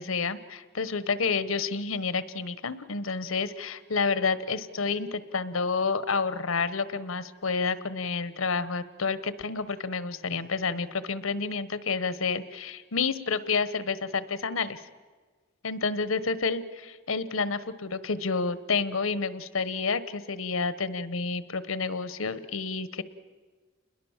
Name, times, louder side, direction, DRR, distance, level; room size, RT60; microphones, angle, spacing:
voice 1, 0.0-14.8 15.6-23.0, left 4 dB, 90° left, 15 dB, 1.1 m, -29 dB
29.0 x 21.5 x 7.3 m, 1.4 s
head